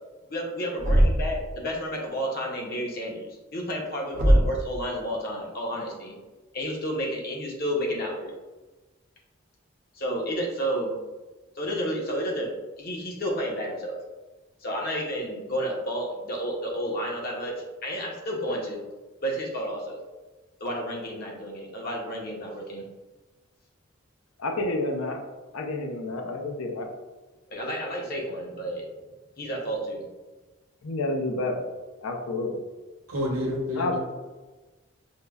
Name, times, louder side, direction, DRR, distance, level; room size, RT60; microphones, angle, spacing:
voice 1, 0.3-6.2 6.5-8.3 9.9-10.9 11.5-14.0 14.6-18.8 19.2-20.0 20.6-22.8 27.5-28.9 29.4-30.0, equal, 45° left, -1 dB, 0.7 m, -31 dB
Thump thud, 0.8-1.4 4.1-4.7, equal, 40° right, 0.5 m, -20 dB
voice 2, 24.4-25.2 25.5-26.9 30.8-31.6 32.0-32.6 33.8-34.0, left 2 dB, 85° left, 3 dB, 0.5 m, -29 dB
voice 3, 33.1-34.0, left 1 dB, 80° right, -2 dB, 0.9 m, -28 dB
5.3 x 2.1 x 2.3 m, 1.2 s
head